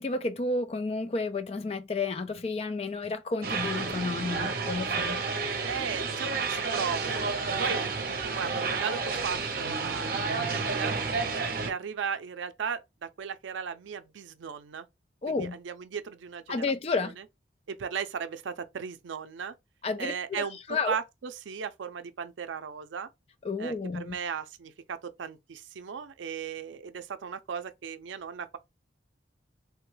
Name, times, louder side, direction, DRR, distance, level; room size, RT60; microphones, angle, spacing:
voice 1, 0.0-5.2 15.2-15.6 16.5-17.1 19.8-20.9 23.4-24.2, left 3 dB, 30° left, 0.3 m, -31 dB
sound 1, 3.4-11.7, right 4 dB, 50° right, 0.7 m, -30 dB
voice 2, 5.6-7.3 7.6-10.9 11.3-14.9 15.3-16.7 17.0-17.1 17.7-19.5 20.0-23.1 23.6-28.6, right 6 dB, 90° right, 0.4 m, -36 dB
3.2 x 2.2 x 3.1 m
head